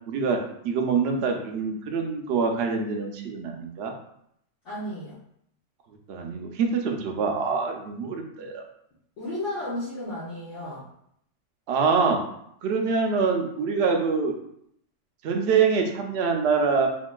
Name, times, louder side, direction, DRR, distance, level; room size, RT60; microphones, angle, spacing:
voice 1, 0.1-0.4 0.6-3.9 6.1-8.6 11.7-12.2 12.6-14.4 15.2-16.9, right 5 dB, 65° right, 3 dB, 0.7 m, -25 dB
voice 2, 4.6-5.1 9.2-10.9, left 1 dB, 65° left, -11 dB, 1.2 m, -33 dB
3.7 x 2.4 x 2.2 m, 0.72 s
omnidirectional pair, 1.3 m